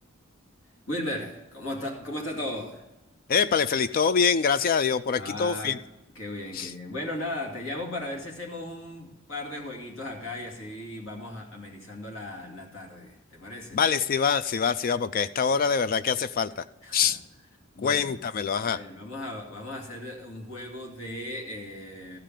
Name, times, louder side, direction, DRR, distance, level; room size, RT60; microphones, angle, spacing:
voice 1, 0.9-2.9 5.2-5.8 6.2-13.8 16.8-17.2 17.8-18.1 18.6-22.2, left 1 dB, 70° left, 0 dB, 2.5 m, -36 dB
voice 2, 3.3-5.8 6.5-6.7 13.7-16.6 16.9-17.2 17.8-18.8, left 6 dB, 45° left, 14 dB, 0.3 m, -24 dB
14.0 x 5.1 x 7.5 m, 0.98 s
head